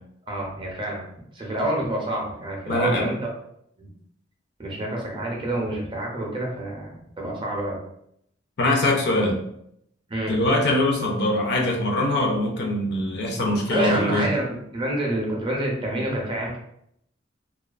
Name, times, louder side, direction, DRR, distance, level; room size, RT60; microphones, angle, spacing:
voice 1, 0.3-1.0 1.3-3.2 3.8-3.9 4.6-7.8 10.1-10.4 13.7-16.6, right 1 dB, 25° right, -2 dB, 0.5 m, -27 dB
voice 2, 2.7-3.1 8.6-9.4 10.3-14.3, left 1 dB, 60° left, 1 dB, 0.5 m, -23 dB
2.3 x 2.3 x 2.3 m, 0.73 s
head